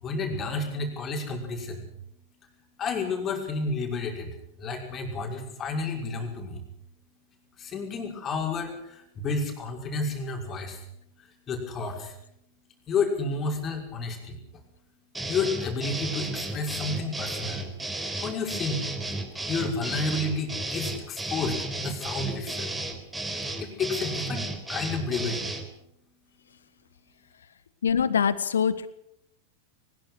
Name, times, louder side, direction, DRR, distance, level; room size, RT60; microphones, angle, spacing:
voice 1, 0.0-1.9 2.8-6.6 7.6-10.9 11.2-12.2 12.9-14.4 15.3-17.7 18.2-19.1 19.5-22.7 23.6-25.5, left 3 dB, 25° left, 3 dB, 5.7 m, -31 dB
sound 1, 15.1-25.7, right 2 dB, 10° right, 3.8 m, -33 dB
voice 2, 27.8-28.9, left 7 dB, 65° left, 15 dB, 1.5 m, -24 dB
22.0 x 20.5 x 6.4 m, 0.75 s
figure-of-eight pair, 90°, 0 cm